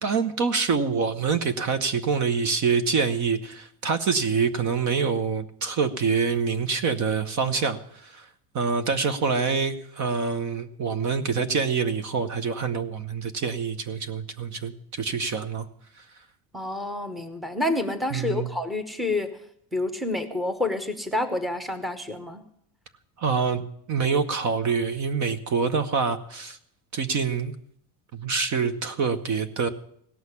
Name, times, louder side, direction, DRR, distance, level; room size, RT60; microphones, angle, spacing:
voice 1, 0.0-8.3 8.5-15.7 18.1-18.5 23.2-26.6 26.9-27.5 28.1-29.7, right 5 dB, 40° right, 11 dB, 0.9 m, -26 dB
voice 2, 16.5-19.3 19.7-22.4, left 2 dB, ahead, 7 dB, 0.9 m, -28 dB
17.0 x 6.4 x 9.7 m, 0.68 s
cardioid pair, 165°, 45 cm